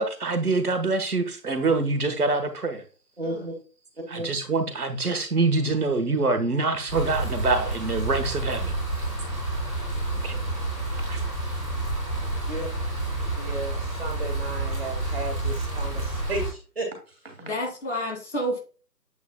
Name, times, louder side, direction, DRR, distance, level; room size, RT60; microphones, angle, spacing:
voice 1, 0.0-2.8 4.1-8.7 10.2-10.4 11.1-11.2, right 3 dB, 65° right, 1.4 m, -25 dB
voice 2, 3.2-3.6 4.1-4.3 12.5-12.7 13.4-17.3, right 1 dB, 35° right, 1.9 m, -34 dB
sound 1, 6.9-16.5, right 2 dB, 5° left, 1.9 m, -29 dB
voice 3, 17.4-18.6, equal, 45° left, 2.5 m, -30 dB
8.1 x 5.3 x 2.2 m
figure-of-eight pair, 175°, 50 cm